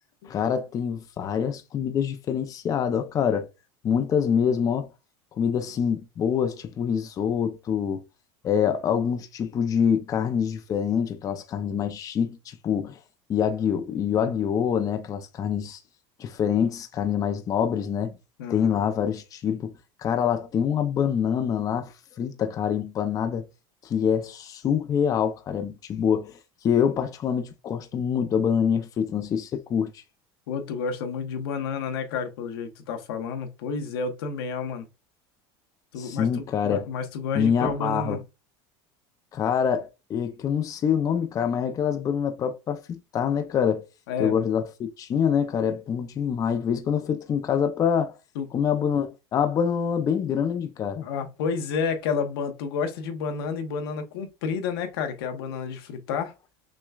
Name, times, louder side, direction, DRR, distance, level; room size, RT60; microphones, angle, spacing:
voice 1, 0.2-3.5 3.8-4.9 5.4-8.0 8.4-13.0 13.3-15.8 16.2-18.1 18.5-19.7 20.0-21.9 22.2-23.4 23.8-26.3 26.6-29.9 36.0-36.9 37.3-38.2 39.3-43.8 44.2-48.1 48.5-51.1, left 7 dB, 30° left, 0.5 m, -25 dB
voice 2, 18.4-18.8 30.5-34.9 35.9-38.2 44.1-44.4 48.3-48.5 51.0-56.3, left 5 dB, 85° left, 1.0 m, -30 dB
6.2 x 2.2 x 2.3 m
supercardioid pair, 135°, 12 cm